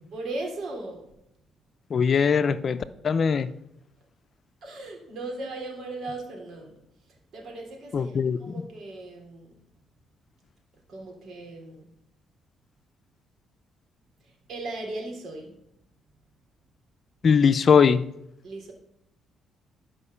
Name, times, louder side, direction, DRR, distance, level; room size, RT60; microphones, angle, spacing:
voice 1, 0.1-1.1 4.6-6.8 7.3-9.5 10.9-11.9 14.2-15.5 18.4-18.7, right 2 dB, 65° right, 3.5 m, -37 dB
voice 2, 1.9-2.8 3.0-3.5 7.9-8.4 17.2-18.0, left 6 dB, 50° left, 0.6 m, -20 dB
12.0 x 5.3 x 6.9 m
cardioid pair, 90°, 0 cm